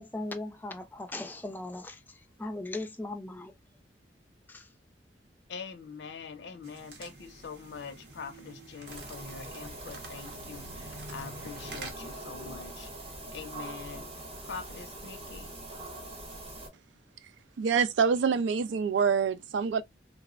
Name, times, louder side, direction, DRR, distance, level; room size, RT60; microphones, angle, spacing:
voice 1, 0.0-3.5 4.5-4.7, left 2 dB, 10° left, 0.4 m, -38 dB
voice 2, 5.5-12.9 13.3-14.0 14.5-15.5, left 5 dB, 75° left, 0.5 m, -44 dB
sound 1, 6.6-11.9, right 2 dB, 65° right, 0.8 m, -47 dB
sound 2, 8.9-16.7, right 1 dB, 35° right, 0.8 m, -43 dB
voice 3, 17.6-19.8, right 6 dB, 80° right, 0.3 m, -26 dB
3.2 x 2.0 x 2.3 m
head